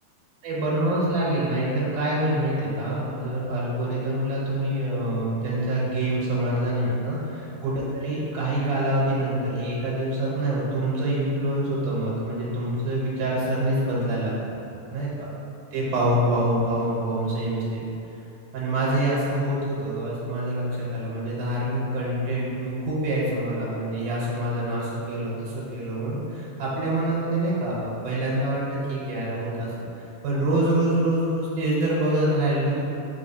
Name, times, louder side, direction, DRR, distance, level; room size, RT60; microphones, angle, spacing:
voice 1, 0.4-14.6 14.9-15.3 15.7-17.9 18.5-32.8, right 1 dB, 85° right, -6 dB, 2.3 m, -26 dB
4.8 x 3.7 x 2.6 m, 2.8 s
omnidirectional pair, 3.6 m